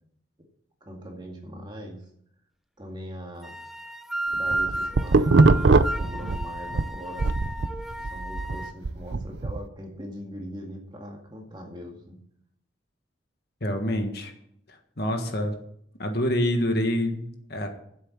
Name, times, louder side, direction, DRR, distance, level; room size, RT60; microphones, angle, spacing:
voice 1, 0.8-2.1 2.8-3.6 4.3-7.3 8.0-12.2, equal, 25° right, 1 dB, 2.1 m, -41 dB
sound 1, 3.4-8.7, right 1 dB, ahead, 0.5 m, -33 dB
sound 2, 4.3-6.9 7.2-9.6, right 3 dB, 65° right, 0.5 m, -21 dB
voice 2, 13.6-14.3 14.7-15.5 16.0-17.7, equal, 55° left, 5 dB, 1.6 m, -27 dB
10.0 x 7.9 x 7.3 m, 0.70 s
head